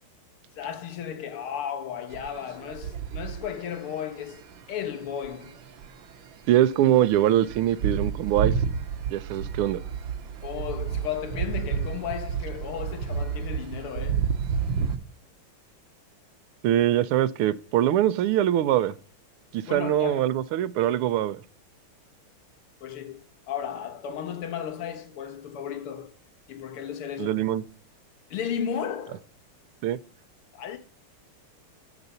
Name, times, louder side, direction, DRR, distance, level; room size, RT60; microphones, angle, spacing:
voice 1, 0.6-4.4 4.7-5.6 10.4-14.2 19.7-20.2 22.8-26.1 26.5-27.4 28.3-29.2 30.5-30.8, left 8 dB, 85° left, 2.1 m, -34 dB
sound 1, 2.1-3.8 4.3-4.6 5.2-5.9 6.1-6.2 6.5-6.6 6.8-15.0, right 7 dB, 70° right, 1.5 m, -30 dB
voice 2, 6.5-8.5 9.1-9.8 16.6-18.9 19.5-21.4 27.2-27.6 29.8-30.0, right 12 dB, 85° right, 1.5 m, -23 dB
8.1 x 6.8 x 5.5 m
omnidirectional pair, 2.4 m